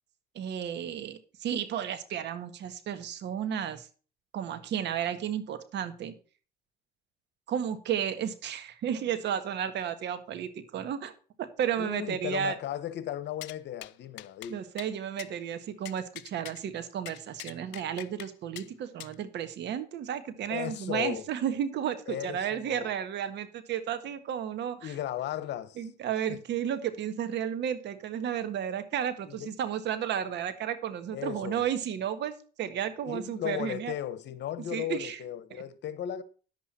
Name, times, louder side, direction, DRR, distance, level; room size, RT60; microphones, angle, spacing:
voice 1, 0.3-3.9 4.3-6.1 7.5-11.1 11.4-12.5 14.5-24.9 25.8-33.9 34.7-35.2, right 9 dB, 70° right, 1.6 m, -33 dB
voice 2, 11.8-14.6 20.5-21.3 22.1-22.9 24.8-25.9 26.3-26.4 29.3-29.5 31.1-31.6 33.0-36.2, left 11 dB, 70° left, 1.2 m, -36 dB
sound 1, 13.4-13.6 13.8-13.9 14.2-14.5 14.8-14.9 15.2-15.3 15.8-16.6 17.0-18.3 18.5-18.7 19.0-19.1, left 19 dB, 90° left, 0.5 m, -43 dB
10.5 x 7.8 x 4.3 m
cardioid pair, 85°, 19 cm